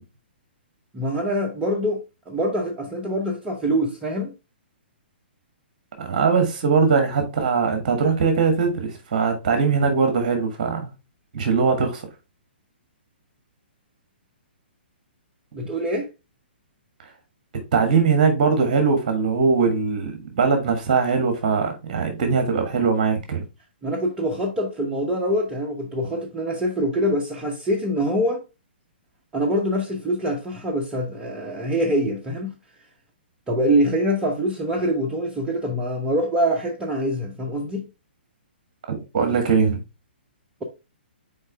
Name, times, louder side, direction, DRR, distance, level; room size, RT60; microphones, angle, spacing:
voice 1, 0.9-4.3 15.5-16.1 23.8-28.4 29.3-32.5 33.5-37.9, equal, 15° right, 0.9 m, -24 dB
voice 2, 6.0-10.9 11.3-12.0 17.7-23.4 39.1-39.8, right 5 dB, 45° right, 1.5 m, -21 dB
6.4 x 4.4 x 3.5 m
figure-of-eight pair, 120°, 6 cm